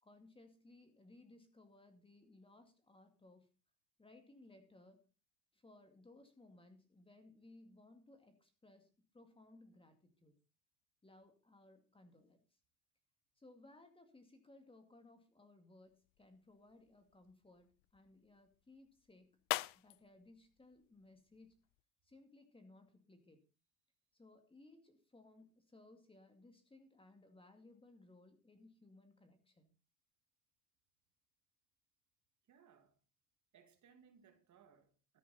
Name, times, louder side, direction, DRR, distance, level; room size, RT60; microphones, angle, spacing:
voice 1, 0.0-3.5 4.0-5.1 5.5-10.3 11.0-12.4 13.4-19.4 19.7-21.6 22.0-23.4 24.1-29.7, left 2 dB, 10° left, 2.3 m, -62 dB
sound 1, 15.8-21.8, left 20 dB, 50° left, 0.5 m, -48 dB
voice 2, 32.4-33.0 33.5-35.2, right 7 dB, 35° right, 2.1 m, -66 dB
13.5 x 9.4 x 4.2 m
supercardioid pair, 110°, 46 cm